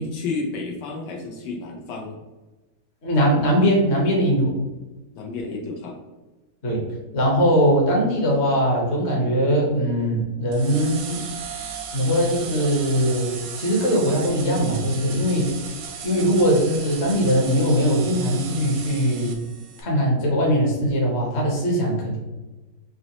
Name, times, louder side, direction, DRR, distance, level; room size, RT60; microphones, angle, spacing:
voice 1, 0.0-2.2 5.1-6.0, left 3 dB, 80° left, 1 dB, 1.3 m, -31 dB
voice 2, 3.0-4.6 6.6-6.8 7.1-11.2 11.9-15.5 16.0-19.4 19.8-22.2, equal, 45° left, -2 dB, 1.2 m, -21 dB
sound 1, 10.5-19.8, right 6 dB, 85° right, 1.3 m, -36 dB
4.0 x 3.0 x 2.9 m, 1.1 s
omnidirectional pair, 1.9 m